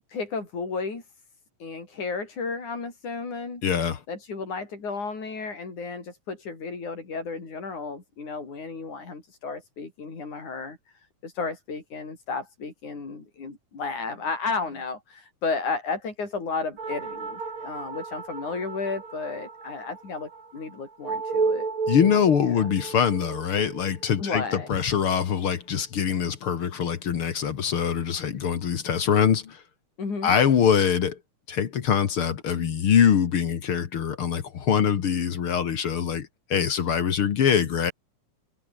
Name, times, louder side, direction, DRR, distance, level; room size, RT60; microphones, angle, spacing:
voice 1, 0.1-1.0 1.6-3.6 4.1-10.8 11.2-21.7 22.6-22.7 24.2-24.7 30.0-30.3, left 4 dB, 75° left, 7.5 m, -33 dB
voice 2, 3.6-4.0 21.9-29.6 30.2-31.2 31.5-37.9, left 8 dB, 50° left, 2.1 m, -23 dB
sound 1, 16.8-25.6, right 4 dB, 65° right, 6.4 m, -33 dB
omnidirectional pair, 3.4 m